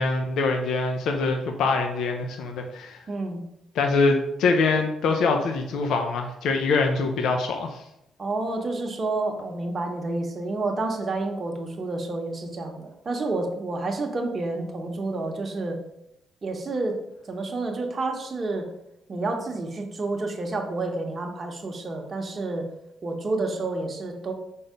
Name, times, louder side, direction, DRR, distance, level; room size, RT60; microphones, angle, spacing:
voice 1, 0.0-3.0 3.8-7.8, left 3 dB, 75° left, 4 dB, 0.7 m, -24 dB
voice 2, 3.1-3.4 8.2-15.8 16.4-17.0 17.3-18.7 19.1-22.7 23.0-24.3, right 2 dB, 35° right, 2 dB, 1.3 m, -29 dB
5.6 x 4.1 x 5.2 m, 0.81 s
cardioid pair, 90°, 0 cm